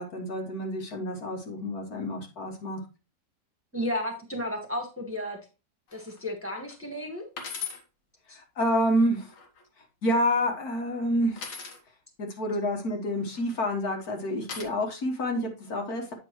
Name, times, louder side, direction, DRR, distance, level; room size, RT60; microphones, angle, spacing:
voice 1, 0.0-2.8 8.3-9.3 10.0-11.5 12.2-16.1, equal, 60° left, 2 dB, 1.8 m, -28 dB
voice 2, 3.7-5.4 5.9-7.2 8.3-8.4, left 1 dB, 10° right, 1 dB, 1.5 m, -33 dB
sound 1, 5.9-6.2 6.7-6.8 7.4-7.8 9.0-9.6 11.4-11.8 13.3-13.7 14.5-14.6, left 6 dB, 85° left, 2.1 m, -38 dB
8.5 x 5.9 x 3.1 m, 0.30 s
omnidirectional pair, 1.9 m